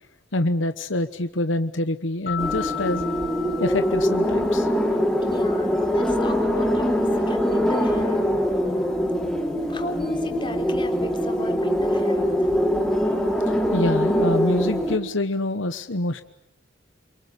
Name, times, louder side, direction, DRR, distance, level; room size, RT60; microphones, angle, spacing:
voice 1, 0.3-3.1 3.6-4.7 13.4-16.2, left 1 dB, 80° left, 10 dB, 1.2 m, -26 dB
sound 1, 2.3-5.0, left 10 dB, 50° left, 2.5 m, -34 dB
sound 2, 2.4-15.0, equal, 5° left, 3.7 m, -23 dB
voice 2, 5.2-8.2 9.7-12.5, left 2 dB, 25° left, 4 dB, 3.6 m, -35 dB
29.0 x 23.5 x 8.5 m, 0.73 s
head